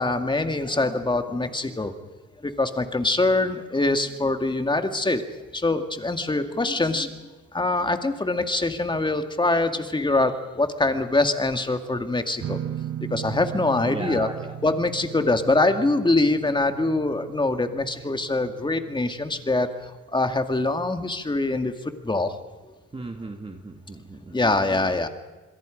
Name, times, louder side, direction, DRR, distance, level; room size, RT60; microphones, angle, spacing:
voice 1, 0.0-1.9 2.4-5.2 5.5-7.1 7.5-12.6 13.1-14.3 14.6-22.4 24.3-25.1, left 2 dB, 15° left, 7 dB, 2.1 m, -24 dB
sound 1, 12.4-20.0, right 10 dB, 50° right, 0.9 m, -38 dB
voice 2, 13.8-14.5 22.9-24.4, right 3 dB, 20° right, 3 dB, 1.9 m, -36 dB
27.5 x 22.0 x 5.2 m, 1.2 s
cardioid pair, 90°, 30 cm